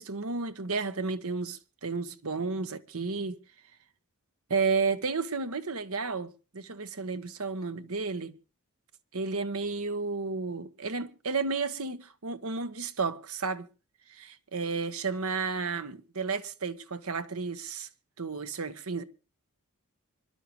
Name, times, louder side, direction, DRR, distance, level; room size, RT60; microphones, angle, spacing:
voice 1, 0.0-3.3 4.5-8.4 9.1-13.7 14.1-17.9 18.2-19.0, right 4 dB, 75° right, 1.2 m, -32 dB
25.5 x 12.0 x 3.1 m
head